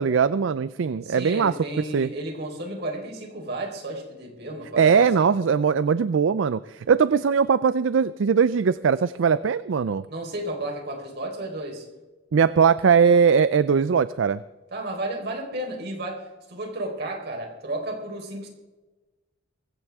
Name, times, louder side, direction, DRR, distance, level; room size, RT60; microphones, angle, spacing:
voice 1, 0.0-1.5 1.9-2.1 4.8-10.0 12.3-14.4, right 6 dB, 80° right, 16 dB, 0.4 m, -20 dB
voice 2, 1.0-5.3 10.1-11.9 14.7-18.5, right 1 dB, 60° right, 1 dB, 4.3 m, -33 dB
22.5 x 16.5 x 3.6 m, 1.2 s
head